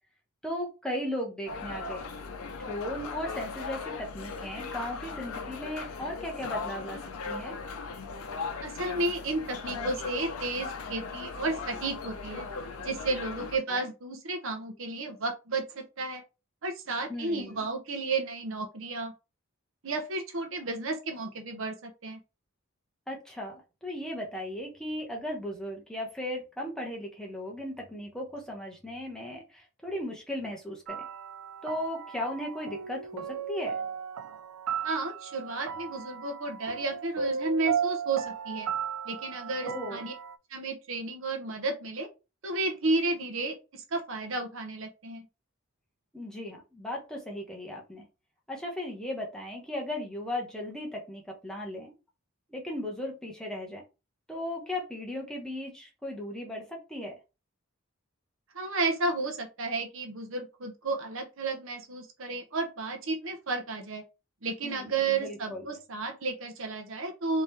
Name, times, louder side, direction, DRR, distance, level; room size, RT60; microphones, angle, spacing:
voice 1, 0.4-2.0 2.6-7.0 7.2-7.6 13.7-13.9 17.1-17.6 23.1-31.0 31.6-33.8 39.6-40.1 46.1-48.0 48.5-51.9 52.5-53.8 54.3-57.2 64.6-65.6, left 1 dB, 5° left, -1 dB, 0.9 m, -36 dB
sound 1, 1.5-13.6, left 4 dB, 80° left, 0.6 m, -38 dB
voice 2, 8.6-12.5 12.8-16.2 16.6-19.1 19.8-22.2 34.8-38.7 39.0-40.1 40.5-42.1 42.4-45.3 58.5-64.0 64.4-67.4, right 3 dB, 65° right, 5 dB, 0.9 m, -32 dB
sound 2, 30.9-40.4, right 7 dB, 85° right, 0.4 m, -35 dB
3.6 x 3.0 x 3.2 m, 0.28 s
head